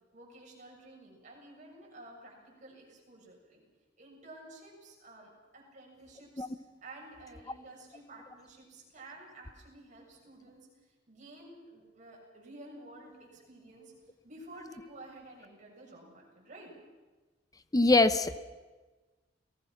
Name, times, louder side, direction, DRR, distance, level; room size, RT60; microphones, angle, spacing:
voice 1, 0.1-3.6 4.0-6.5 6.8-10.7 11.1-13.9 14.2-16.8, right 2 dB, 40° right, -1 dB, 7.1 m, -51 dB
voice 2, 17.7-18.4, left 2 dB, 20° left, 12 dB, 0.8 m, -23 dB
29.0 x 18.5 x 6.0 m, 1.3 s
head